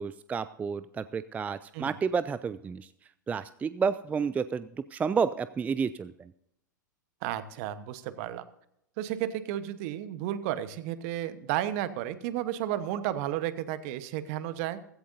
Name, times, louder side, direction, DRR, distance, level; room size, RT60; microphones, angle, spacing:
voice 1, 0.0-2.9 3.3-6.3, right 6 dB, 15° right, 14 dB, 0.3 m, -30 dB
voice 2, 7.2-8.4 9.0-14.8, right 12 dB, 50° right, 13 dB, 1.1 m, -33 dB
15.5 x 14.5 x 2.7 m, 0.78 s
figure-of-eight pair, 95°, 11 cm